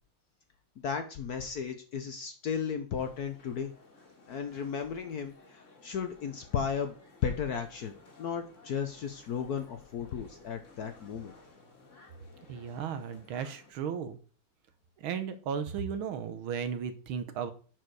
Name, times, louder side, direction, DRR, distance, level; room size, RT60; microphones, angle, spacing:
voice 1, 0.8-3.7 4.3-6.9 7.2-11.3, left 7 dB, 60° left, 7 dB, 1.0 m, -35 dB
sound 1, 2.9-13.7, left 3 dB, 35° left, 2.0 m, -57 dB
voice 2, 12.5-14.2 15.0-17.5, right 7 dB, 75° right, 10 dB, 1.7 m, -35 dB
10.0 x 4.8 x 4.7 m, 0.40 s
omnidirectional pair, 2.3 m